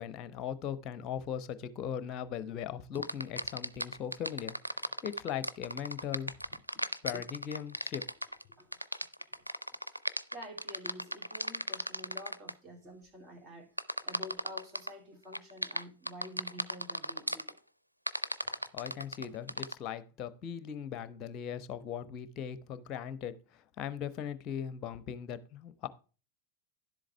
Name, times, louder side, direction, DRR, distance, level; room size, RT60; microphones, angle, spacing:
voice 1, 0.0-6.4 7.0-8.1 18.7-25.9, left 9 dB, 35° left, 0.9 m, -39 dB
sound 1, 3.0-12.5 13.8-14.9 15.3-17.5 18.1-19.7, equal, 90° left, 0.4 m, -36 dB
voice 2, 10.3-13.7 14.0-17.6, equal, 25° right, 2.8 m, -48 dB
11.0 x 7.6 x 3.3 m
figure-of-eight pair, 90°, 0 cm